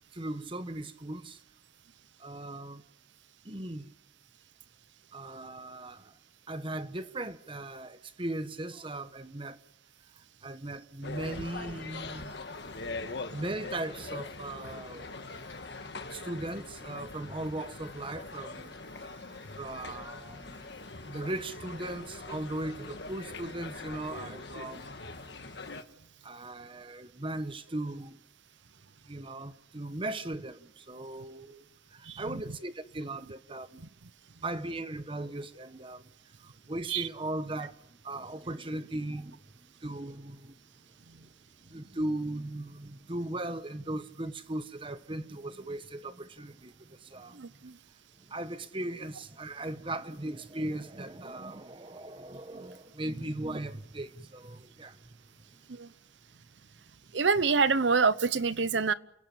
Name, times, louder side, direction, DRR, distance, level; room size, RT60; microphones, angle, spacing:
voice 1, 0.1-1.4 2.2-2.8 3.4-3.9 5.1-6.1 6.5-9.6 10.4-12.4 13.3-15.1 16.1-18.8 19.6-20.7 21.0-24.9 26.2-28.2 29.1-33.8 34.4-36.1 36.4-37.8 38.0-40.5 41.7-47.5 48.3-55.2 55.5-55.6, right 1 dB, 30° right, 1.1 m, -38 dB
sound 1, 11.0-25.8, left 3 dB, 65° left, 1.6 m, -42 dB
voice 2, 32.0-32.4 33.8-34.1 36.9-37.1 47.3-47.8 55.7-55.9 57.1-58.9, right 4 dB, 80° right, 0.9 m, -27 dB
28.5 x 17.0 x 8.6 m
head